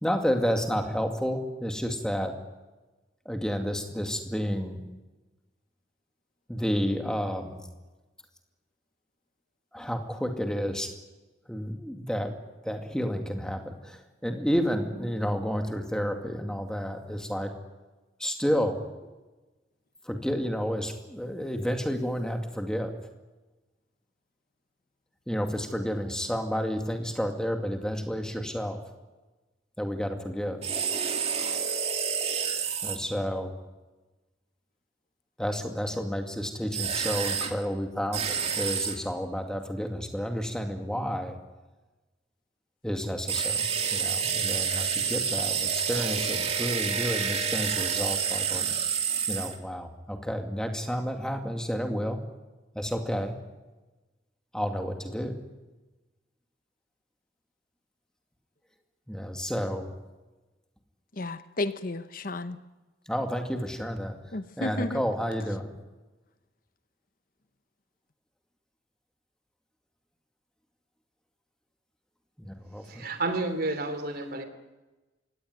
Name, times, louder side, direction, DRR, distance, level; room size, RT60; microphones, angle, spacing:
voice 1, 0.0-2.3 3.3-4.8 6.5-7.6 9.7-10.9 11.5-12.3 12.7-17.5 18.2-18.8 20.1-22.9 25.3-28.8 29.8-30.6 32.8-33.5 35.4-41.3 42.8-48.7 49.3-52.2 52.8-53.3 54.5-55.3 59.1-59.8 63.1-64.2 64.6-65.7 72.4-73.0, equal, 5° left, 4 dB, 2.2 m, -30 dB
sound 1, 30.6-33.0 36.7-37.5 38.1-39.0 43.3-49.6, right 7 dB, 30° right, 2.4 m, -28 dB
voice 2, 61.2-62.6 64.3-65.0, left 2 dB, 45° left, 11 dB, 0.9 m, -32 dB
voice 3, 72.8-74.4, right 2 dB, 50° right, 9 dB, 3.0 m, -30 dB
24.0 x 17.5 x 9.5 m, 1.2 s
head